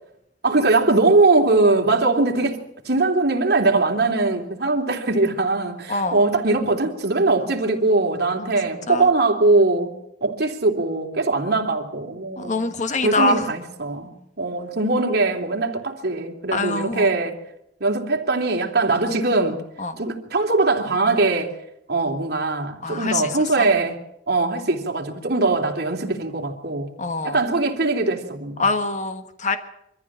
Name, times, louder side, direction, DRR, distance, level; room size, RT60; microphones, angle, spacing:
voice 1, 0.4-9.9 10.2-12.5 13.0-17.4 17.8-19.6 20.0-21.5 21.9-24.0 24.3-26.9 27.2-28.6, right 3 dB, 60° right, 3.2 m, -21 dB
voice 2, 12.4-13.5 16.5-17.2 19.8-20.0 22.8-23.3 23.6-23.7 27.0-27.4 28.6-29.6, left 3 dB, 40° left, 1.5 m, -24 dB
24.5 x 14.5 x 7.6 m
head